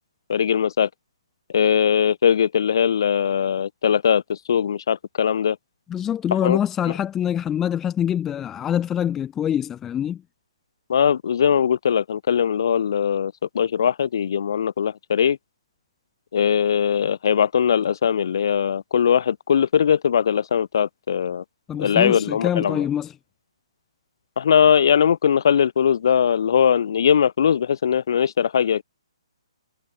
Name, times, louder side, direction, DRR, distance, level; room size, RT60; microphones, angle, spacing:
voice 1, 0.3-0.9 1.5-5.6 6.4-6.6 10.9-15.4 16.3-21.4 21.8-22.9 24.4-28.8, left 8 dB, 45° left, 3.3 m, -20 dB
voice 2, 5.9-10.2 21.7-23.1, left 9 dB, 10° left, 0.6 m, -24 dB
hypercardioid pair, 175°, 3 cm